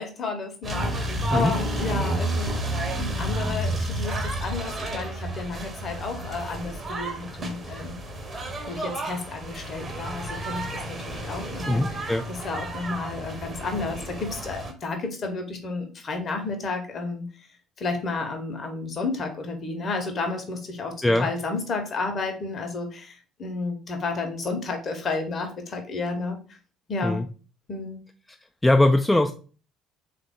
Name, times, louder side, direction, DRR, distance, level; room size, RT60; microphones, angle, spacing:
voice 1, 0.0-2.5 3.0-8.0 8.7-17.3 17.8-26.4 26.9-27.2 27.7-28.0, left 3 dB, 40° left, 5 dB, 0.9 m, -32 dB
sound 1, 0.6-14.7, right 1 dB, 30° right, 0.9 m, -31 dB
voice 2, 11.7-12.2 21.0-21.3 27.0-27.3 28.6-29.3, left 1 dB, 10° left, 5 dB, 0.3 m, -21 dB
3.6 x 2.5 x 3.6 m, 0.37 s
figure-of-eight pair, 55°, 0 cm